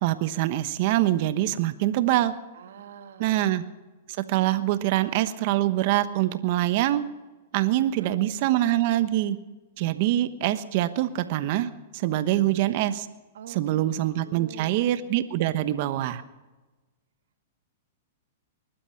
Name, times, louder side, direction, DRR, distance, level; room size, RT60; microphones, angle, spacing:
voice 1, 0.0-2.3 3.2-3.6 4.2-7.0 7.5-9.4 9.8-13.1 13.5-16.2, right 14 dB, 50° right, 12 dB, 1.1 m, -24 dB
voice 2, 2.5-3.4 7.7-8.2 13.3-13.9 14.2-14.8, right 8 dB, 75° right, 7 dB, 1.7 m, -44 dB
21.0 x 12.0 x 5.8 m, 1.2 s
hypercardioid pair, 140°, 0 cm